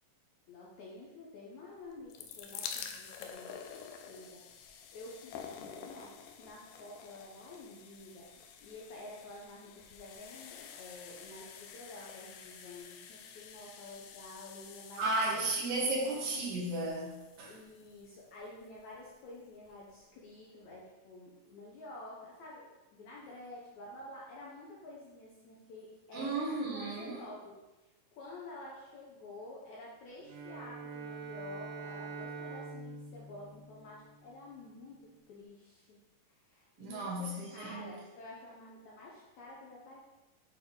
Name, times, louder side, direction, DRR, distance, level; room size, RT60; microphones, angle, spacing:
voice 1, 0.5-15.5 15.8-16.1 17.5-27.5 27.8-36.0 36.5-40.0, left 2 dB, 70° left, -5 dB, 1.8 m, -50 dB
sound 1, 1.9-18.9 19.7-19.8 19.9-20.0, left 7 dB, 85° left, 1.8 m, -49 dB
voice 2, 15.0-17.5 26.1-27.2 36.8-37.9, right 2 dB, 70° right, -3 dB, 2.9 m, -34 dB
Bowed string instrument, 30.2-34.6, right 4 dB, 85° right, 2.6 m, -45 dB
8.2 x 4.2 x 3.8 m, 1.1 s
omnidirectional pair, 4.2 m